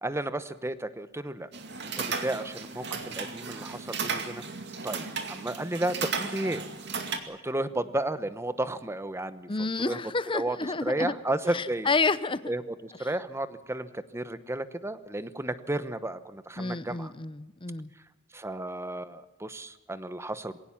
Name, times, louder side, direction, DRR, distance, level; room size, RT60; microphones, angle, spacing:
voice 1, 0.0-1.5 1.8-4.4 4.8-6.6 7.3-10.0 10.3-11.9 12.4-17.1 18.3-20.6, right 1 dB, 15° right, 13 dB, 1.0 m, -33 dB
sound 1, 1.5-7.2, right 5 dB, 60° right, 2.3 m, -35 dB
voice 2, 9.5-11.1 11.5-12.5 16.6-17.9, left 3 dB, 25° left, 15 dB, 0.8 m, -29 dB
21.0 x 17.5 x 7.2 m, 1.0 s
head